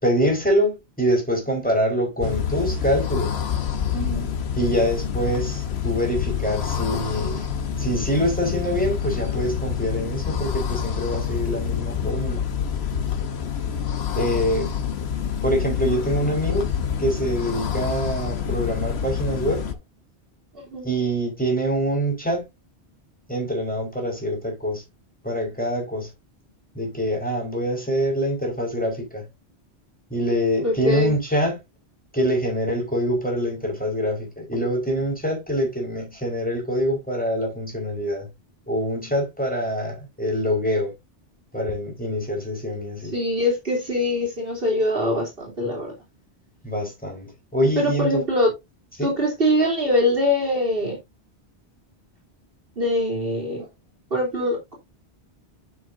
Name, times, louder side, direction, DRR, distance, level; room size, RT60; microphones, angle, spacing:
voice 1, 0.0-3.4 4.6-7.5 7.8-12.4 14.2-14.7 15.4-16.7 17.0-19.7 20.8-22.5 23.3-24.8 25.2-26.1 26.7-29.2 30.1-31.6 32.1-38.3 38.7-40.9 41.5-43.1 46.6-48.2 49.0-49.1, equal, 5° left, 4.7 m, -25 dB
sound 1, 2.2-19.7, left 8 dB, 70° left, 1.3 m, -27 dB
voice 2, 3.9-4.3 20.5-20.9 30.6-31.2 43.1-45.9 47.8-48.5 49.0-51.0 52.8-53.7 54.1-54.7, left 1 dB, 55° right, 3.4 m, -23 dB
10.5 x 6.0 x 2.6 m
omnidirectional pair, 1.1 m